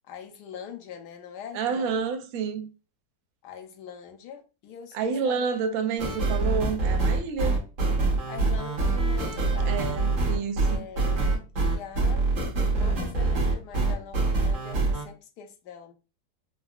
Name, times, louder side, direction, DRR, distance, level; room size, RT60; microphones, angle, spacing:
voice 1, 0.1-2.0 3.4-5.5 8.3-9.9 10.6-12.3 12.7-15.9, left 8 dB, 75° left, 1.1 m, -43 dB
voice 2, 1.5-2.7 4.9-7.6 9.7-10.8, right 6 dB, 70° right, 0.8 m, -29 dB
sound 1, 6.0-15.0, right 3 dB, 55° right, 1.2 m, -25 dB
3.7 x 2.1 x 2.3 m
omnidirectional pair, 1.9 m